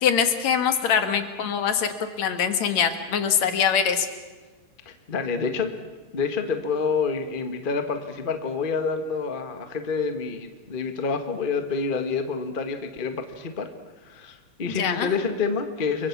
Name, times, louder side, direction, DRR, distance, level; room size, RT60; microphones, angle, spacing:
voice 1, 0.0-1.9 2.2-4.1 14.8-15.2, left 7 dB, 65° left, 8 dB, 2.8 m, -23 dB
voice 2, 4.8-5.8 6.1-13.7 14.0-16.1, left 5 dB, 25° left, 7 dB, 1.2 m, -28 dB
29.5 x 23.5 x 6.1 m, 1.2 s
omnidirectional pair, 3.4 m